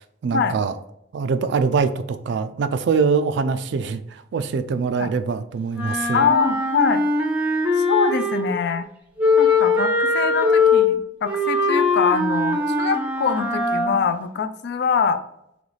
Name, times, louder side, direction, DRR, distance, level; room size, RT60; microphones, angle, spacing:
voice 1, 0.2-0.7 1.1-6.3, right 5 dB, 60° right, 11 dB, 0.3 m, -23 dB
Wind instrument woodwind instrument, 5.7-8.6 9.2-14.0, left 3 dB, 5° right, 0.6 m, -21 dB
voice 2, 6.1-7.0 7.8-8.9 9.4-15.2, left 6 dB, 55° left, 11 dB, 0.3 m, -23 dB
3.9 x 3.0 x 3.2 m, 0.78 s
head